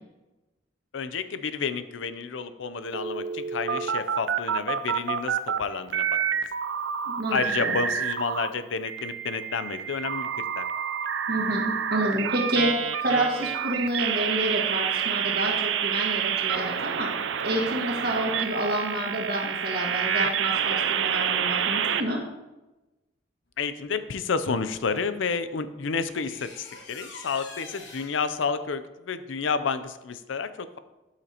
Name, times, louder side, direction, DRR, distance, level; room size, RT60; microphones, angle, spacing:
voice 1, 0.9-6.2 7.3-10.3 10.6-10.7 23.6-30.8, left 5 dB, 90° left, 12 dB, 0.5 m, -30 dB
sound 1, 2.9-5.6 5.9-8.5 8.8-22.0, right 8 dB, 80° right, 0.5 m, -28 dB
voice 2, 7.0-7.7 11.3-17.1 17.4-22.2, right 1 dB, 55° right, -1 dB, 1.7 m, -28 dB
sound 2, 25.0-25.1 26.2-28.4, left 3 dB, 70° left, 1.4 m, -44 dB
12.0 x 5.8 x 2.9 m, 1.1 s
head